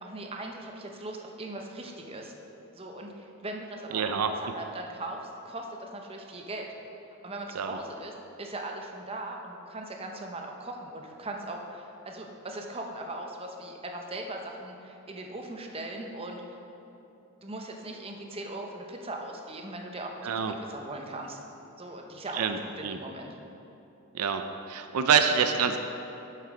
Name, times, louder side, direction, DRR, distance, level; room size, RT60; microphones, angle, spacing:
voice 1, 0.0-2.3 2.7-6.7 7.2-16.6 17.4-20.2 20.7-21.4 21.8-23.3, right 1 dB, 25° right, 2 dB, 0.7 m, -39 dB
voice 2, 3.9-4.3 7.5-7.7 20.2-20.6 22.3-23.0 24.1-24.4 24.7-25.8, right 7 dB, 80° right, 7 dB, 0.4 m, -26 dB
7.6 x 6.6 x 4.9 m, 3.0 s
head